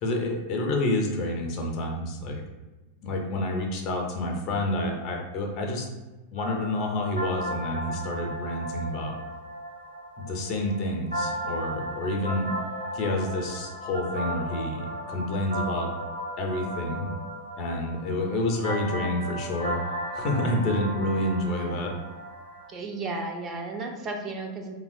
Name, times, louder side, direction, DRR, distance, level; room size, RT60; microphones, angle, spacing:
voice 1, 0.0-2.4 3.0-5.9 6.3-9.1 10.2-12.5 12.9-15.9 16.4-17.1 17.6-19.8 20.1-21.9, left 1 dB, 40° left, 1 dB, 0.5 m, -28 dB
sound 1, 6.4-22.7, equal, 90° right, 0.8 m, -35 dB
voice 2, 22.7-24.8, right 3 dB, 30° right, 2 dB, 0.4 m, -33 dB
2.9 x 2.1 x 2.5 m, 1.1 s
figure-of-eight pair, 90°, 0 cm